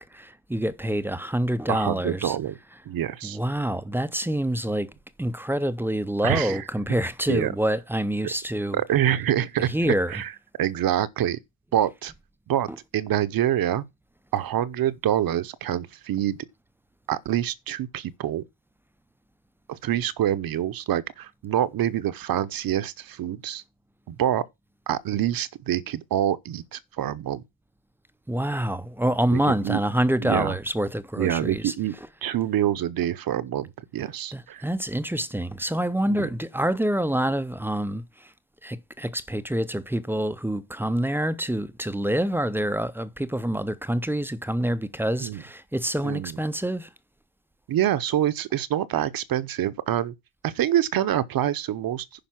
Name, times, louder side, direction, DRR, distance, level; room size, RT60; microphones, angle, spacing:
voice 1, 0.0-2.4 2.7-2.8 3.2-4.9 5.2-8.8 9.6-10.2 12.7-12.8 28.3-32.1 34.3-38.0 38.6-46.9, right 1 dB, 5° right, 0.5 m, -26 dB
voice 2, 1.7-2.6 2.9-3.4 6.2-6.6 7.3-7.5 8.7-10.3 10.6-11.4 11.7-12.1 12.5-12.7 12.9-13.8 14.3-16.4 17.1-18.4 19.7-23.6 24.1-24.4 24.9-27.4 29.3-29.8 30.2-30.5 31.2-31.9 32.2-34.6 36.1-36.3 45.2-45.4 46.0-46.4 47.7-50.1 50.4-52.1, right 11 dB, 45° right, 0.8 m, -26 dB
10.5 x 5.3 x 5.9 m
cardioid pair, 140°, 48 cm